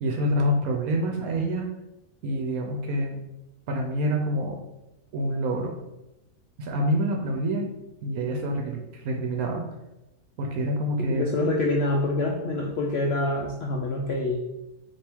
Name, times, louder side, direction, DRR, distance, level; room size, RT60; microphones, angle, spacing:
voice 1, 0.0-1.7 2.2-3.2 3.7-4.6 5.1-5.7 6.6-7.7 8.0-9.7 10.4-11.3, equal, 70° right, 1 dB, 1.1 m, -27 dB
voice 2, 11.1-14.4, left 2 dB, 70° left, -1 dB, 0.6 m, -26 dB
3.5 x 2.9 x 4.4 m, 0.95 s
omnidirectional pair, 1.6 m